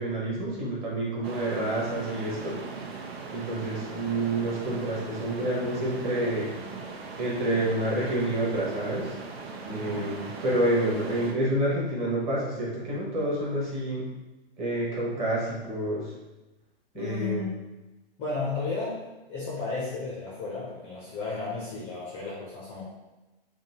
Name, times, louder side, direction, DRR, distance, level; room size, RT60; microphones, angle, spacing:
voice 1, 0.0-2.6 3.3-6.5 7.2-9.1 9.6-14.1 14.6-16.1 16.9-17.4, right 1 dB, 20° right, -6 dB, 0.9 m, -28 dB
sound 1, 1.2-11.3, right 4 dB, 80° right, 0.8 m, -39 dB
voice 2, 16.9-17.5 18.2-19.0 19.3-22.8, left 4 dB, 20° left, -6 dB, 0.6 m, -33 dB
3.5 x 2.6 x 4.1 m, 1.1 s
hypercardioid pair, 155°, 31 cm